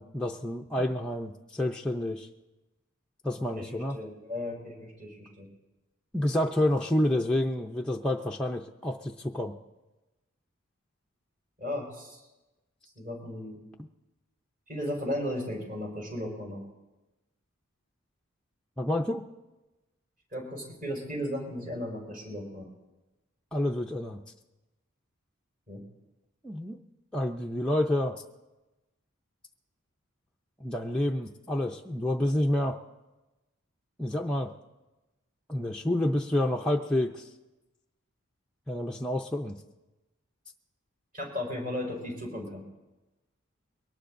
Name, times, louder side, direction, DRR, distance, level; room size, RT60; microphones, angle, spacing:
voice 1, 0.0-2.3 3.2-4.0 6.1-9.5 18.8-19.2 23.5-24.2 26.4-26.8 27.1-28.2 30.6-32.8 34.0-34.5 35.5-37.3 38.7-39.6, left 1 dB, 5° left, -1 dB, 0.5 m, -29 dB
voice 2, 3.5-5.5 11.6-12.2 12.9-13.6 14.7-16.6 20.3-22.7 25.7-25.8 41.1-42.6, left 1 dB, 40° right, -2 dB, 5.1 m, -35 dB
23.0 x 18.5 x 2.6 m, 1.1 s
head